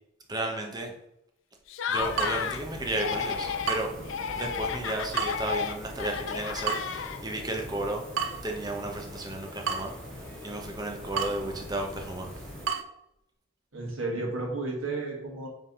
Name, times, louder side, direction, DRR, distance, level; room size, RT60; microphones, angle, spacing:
voice 1, 0.3-0.9 1.9-3.9 4.3-8.1 8.4-9.9 10.4-12.3, right 2 dB, 20° right, 2 dB, 0.8 m, -33 dB
Laughter, 1.7-2.6 2.9-3.8 4.1-7.4, left 7 dB, 65° left, 0.4 m, -32 dB
sound 1, 1.9-12.7, left 1 dB, 5° left, 1.2 m, -43 dB
Water tap faucet / Drip, 2.1-12.8, right 6 dB, 70° right, 0.5 m, -37 dB
voice 2, 13.7-15.5, right 2 dB, 85° right, -1 dB, 1.9 m, -32 dB
5.5 x 3.4 x 5.3 m, 0.82 s
head